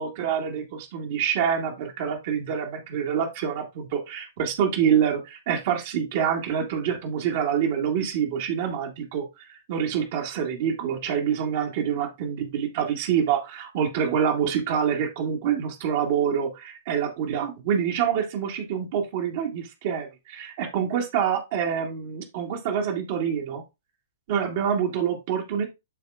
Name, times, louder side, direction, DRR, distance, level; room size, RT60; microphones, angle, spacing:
voice 1, 0.0-23.6 24.3-25.7, right 8 dB, 45° right, 2 dB, 1.7 m, -26 dB
12.0 x 4.3 x 2.4 m, 0.23 s
figure-of-eight pair, 110°, 0 cm